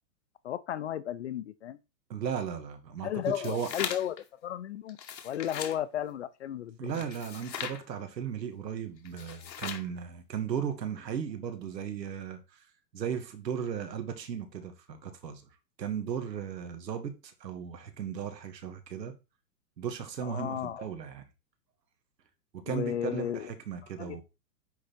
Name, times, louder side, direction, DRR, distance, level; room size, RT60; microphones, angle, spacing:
voice 1, 0.4-1.8 3.0-5.0 5.2-7.0 20.2-20.9 22.6-23.5 24.0-24.2, left 10 dB, 45° left, 0.6 m, -34 dB
voice 2, 2.1-3.7 6.8-12.4 12.9-15.4 15.8-19.1 19.8-21.2 22.5-24.2, right 8 dB, 85° right, 2.1 m, -36 dB
sound 1, 3.3-4.2 4.9-5.8 6.9-7.8 9.1-9.9, left 8 dB, 90° left, 1.9 m, -39 dB
9.5 x 3.9 x 4.3 m
hypercardioid pair, 160°, 49 cm